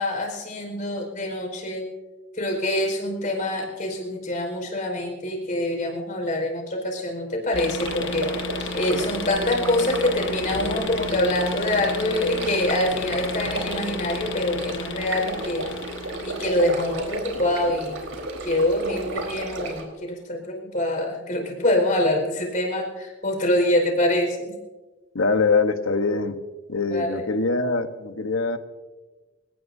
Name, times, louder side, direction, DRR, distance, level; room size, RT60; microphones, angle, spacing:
voice 1, 0.0-1.9 2.3-15.7 16.3-18.0 18.4-24.6 26.9-27.2, left 1 dB, 40° left, 2 dB, 5.0 m, -25 dB
sound 1, 7.5-17.0, left 3 dB, 65° left, 1.4 m, -33 dB
sound 2, 7.8-19.8, right 2 dB, 85° right, 4.3 m, -33 dB
voice 2, 25.1-26.4 26.7-28.6, left 3 dB, 85° left, 8 dB, 1.2 m, -23 dB
27.5 x 18.5 x 2.8 m, 1.3 s
head